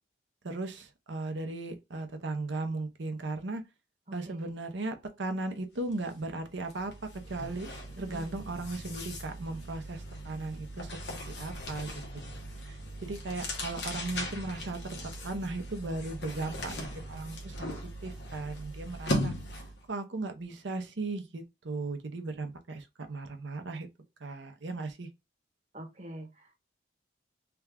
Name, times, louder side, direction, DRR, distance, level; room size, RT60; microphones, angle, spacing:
voice 1, 0.4-3.6 4.1-7.7 8.0-12.0 12.6-17.7 18.0-19.3 19.9-23.9 24.2-25.1, right 2 dB, 80° right, 0.7 m, -37 dB
voice 2, 4.1-4.5 8.0-8.4 25.7-26.5, right 1 dB, 35° right, 1.0 m, -45 dB
sound 1, 5.9-6.1 6.4-19.8, left 1 dB, 65° left, 1.0 m, -39 dB
3.4 x 2.3 x 3.4 m
head